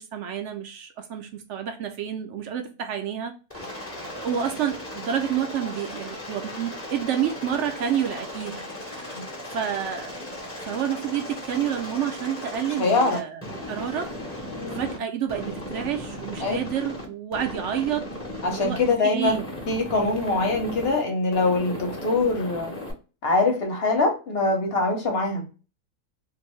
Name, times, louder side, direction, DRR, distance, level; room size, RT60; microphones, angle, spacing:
voice 1, 0.0-3.6 4.2-8.6 8.9-9.2 9.5-10.2 10.6-14.1 14.7-18.1 18.5-19.5, right 9 dB, 65° right, 0.7 m, -29 dB
Aircraft, 3.5-15.0 15.3-17.1 17.3-18.9 19.2-21.0 21.3-22.9, left 1 dB, 15° left, 0.6 m, -36 dB
voice 2, 12.8-13.2 14.5-14.8 16.4-16.6 18.4-19.3 19.7-22.7 23.2-25.5, left 3 dB, 50° left, 1.0 m, -23 dB
2.7 x 2.6 x 3.0 m
omnidirectional pair, 1.5 m